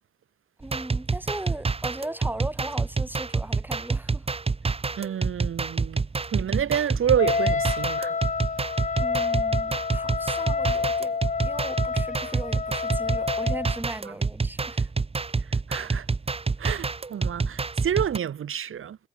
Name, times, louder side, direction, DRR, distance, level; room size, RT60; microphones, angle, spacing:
voice 1, 0.6-4.3 9.0-14.9, right 1 dB, 10° right, 4.5 m, -38 dB
sound 1, 0.6-18.2, right 4 dB, 30° right, 1.7 m, -28 dB
voice 2, 5.0-6.0 6.3-8.2 14.1-14.2 15.4-16.1 16.6-19.0, right 9 dB, 85° right, 2.5 m, -28 dB
Wind instrument woodwind instrument, 7.2-13.8, left 5 dB, 35° left, 1.5 m, -28 dB
wide cardioid pair, 120°, 21 cm